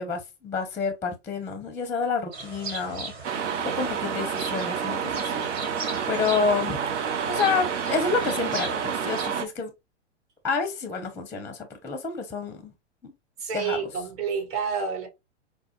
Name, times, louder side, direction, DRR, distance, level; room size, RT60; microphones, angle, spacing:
voice 1, 0.0-3.1 3.8-5.5 6.1-6.8 7.3-9.7 10.4-12.7 13.0-13.1 13.5-13.8, left 5 dB, 5° left, 0.6 m, -29 dB
sound 1, 2.3-9.3, right 3 dB, 60° right, 1.7 m, -38 dB
sound 2, 3.2-9.5, right 7 dB, 80° right, 0.6 m, -29 dB
voice 2, 13.4-15.1, right 6 dB, 40° right, 1.4 m, -29 dB
4.6 x 2.1 x 2.9 m
hypercardioid pair, 105°, 35 cm